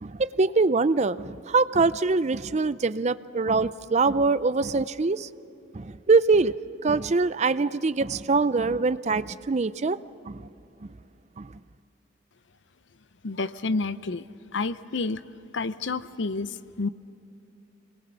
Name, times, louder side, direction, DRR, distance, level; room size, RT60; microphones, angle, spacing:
voice 1, 0.0-5.3 5.7-6.5 6.8-10.0 10.3-10.4 10.8-10.9 11.4-11.5, right 3 dB, 35° right, 15 dB, 0.5 m, -23 dB
voice 2, 13.2-14.2 14.5-15.2 15.5-16.9, left 3 dB, 70° left, 14 dB, 0.7 m, -29 dB
27.0 x 21.5 x 6.9 m, 2.7 s
head